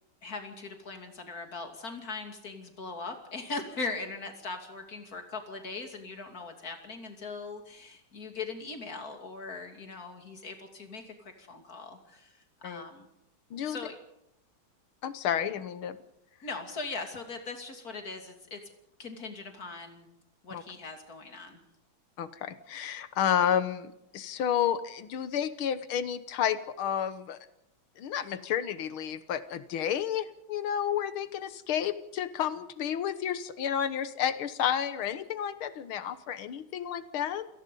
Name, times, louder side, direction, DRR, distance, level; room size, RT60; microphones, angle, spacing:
voice 1, 0.2-13.1 13.7-14.0 16.4-18.6 19.0-20.1 20.4-21.6, left 3 dB, 45° left, 5 dB, 3.2 m, -40 dB
voice 2, 15.0-16.0 20.5-20.6 22.2-27.4 28.0-37.5, left 9 dB, 85° left, 13 dB, 2.0 m, -31 dB
27.5 x 18.5 x 5.4 m, 0.81 s
omnidirectional pair, 2.2 m